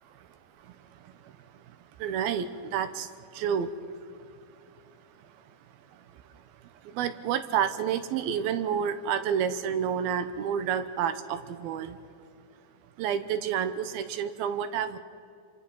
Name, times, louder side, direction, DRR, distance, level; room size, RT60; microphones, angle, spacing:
voice 1, 0.2-12.0 13.0-15.0, right 8 dB, 80° right, 10 dB, 2.8 m, -31 dB
27.5 x 25.5 x 5.6 m, 2.4 s
omnidirectional pair, 4.4 m